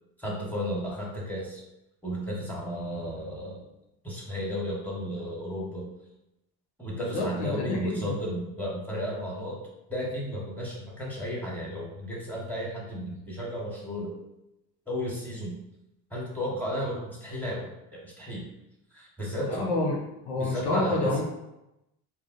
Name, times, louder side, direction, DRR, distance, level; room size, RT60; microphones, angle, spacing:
voice 1, 0.2-1.6 2.0-3.6 4.0-5.8 6.8-9.6 9.9-14.1 14.9-15.6 16.1-18.4 18.9-19.7 20.4-21.2, equal, 5° left, -4 dB, 1.4 m, -33 dB
voice 2, 6.9-8.2 19.4-20.0 20.2-21.2, left 2 dB, 85° left, -1 dB, 0.8 m, -28 dB
3.6 x 2.3 x 2.6 m, 0.90 s
hypercardioid pair, 65°, 43 cm